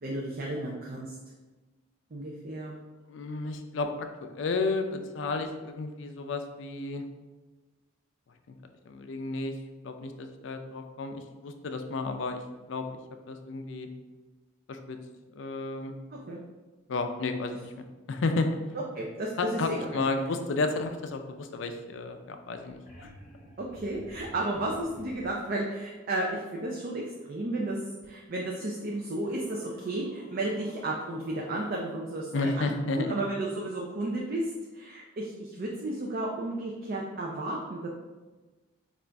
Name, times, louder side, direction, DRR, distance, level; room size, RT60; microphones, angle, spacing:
voice 1, 0.0-1.2 2.1-2.8 16.3-16.4 18.9-20.0 23.6-26.3 26.5-27.8 28.1-37.9, right 1 dB, 45° right, -2 dB, 0.4 m, -33 dB
voice 2, 3.1-7.0 8.5-8.6 8.9-9.6 9.8-12.4 12.7-13.0 13.3-13.9 14.7-15.0 15.3-15.9 16.9-17.7 18.1-18.6 19.4-23.1 32.3-33.2, left 3 dB, 65° left, 6 dB, 0.4 m, -32 dB
sound 1, 22.4-25.5 28.0-28.1 28.8-31.9 34.4-34.5, equal, 40° left, 0.9 m, -51 dB
5.1 x 2.4 x 3.3 m, 1.2 s
head